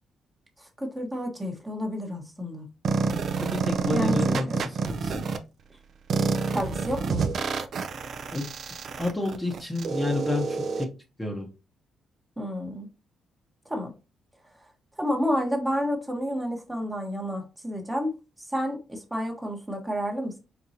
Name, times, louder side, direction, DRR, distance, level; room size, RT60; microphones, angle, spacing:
voice 1, 0.6-2.7 3.9-4.6 6.5-7.3 12.4-12.9 13.6-13.9 15.0-20.4, equal, 10° right, 2 dB, 1.1 m, -30 dB
sound 1, 2.8-5.4 6.1-10.8, right 4 dB, 55° right, 0.5 m, -28 dB
voice 2, 3.4-5.2 8.3-8.5 9.0-10.9 11.2-11.5, left 2 dB, 10° left, 1 dB, 0.9 m, -30 dB
4.4 x 3.8 x 2.7 m, 0.30 s
cardioid pair, 130°, 0 cm